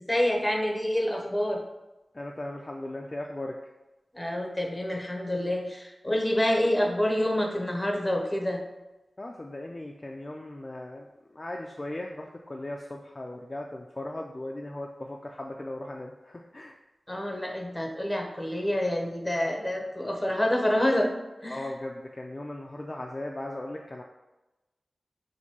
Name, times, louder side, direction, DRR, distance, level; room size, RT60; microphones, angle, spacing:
voice 1, 0.0-1.6 4.1-8.6 17.1-21.1 21.4-21.7, left 1 dB, 10° left, 1 dB, 0.7 m, -27 dB
voice 2, 2.1-3.5 9.2-11.1 11.3-16.7 21.5-24.0, left 1 dB, 35° left, 0 dB, 0.3 m, -38 dB
5.8 x 2.6 x 2.8 m, 1.0 s
wide cardioid pair, 75°, 0 cm